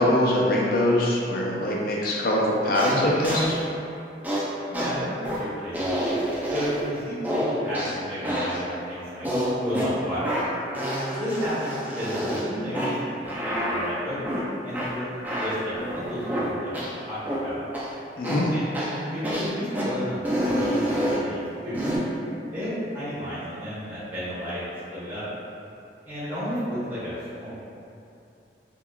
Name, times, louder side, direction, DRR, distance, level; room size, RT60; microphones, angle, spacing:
voice 1, 0.0-3.6 18.2-18.5, left 1 dB, 55° left, -3 dB, 0.4 m, -23 dB
sound 1, 2.7-3.0 3.2-3.5 4.2-4.4 4.7-4.9 5.2-5.4 5.7-6.8 7.2-7.9 8.2-8.6 9.2-9.9 10.2-10.5 10.7-12.4 12.7-12.9 13.2-13.9 14.2-14.4 14.7-14.9 15.2-16.4 16.7-16.9 17.2-17.4 17.7-17.9 18.2-18.5 18.7-19.0 19.2-19.5 19.7-19.9 20.2-21.2 21.7-22.0, equal, 10° right, 0.4 m, -28 dB
voice 2, 4.7-6.1 6.5-9.3 9.5-10.4 11.1-14.2 14.6-15.0 15.4-17.6 18.5-18.7 19.1-21.8 22.5-25.2 26.0-27.6, equal, 30° right, -14 dB, 0.8 m, -32 dB
3.5 x 2.3 x 2.2 m, 2.6 s
head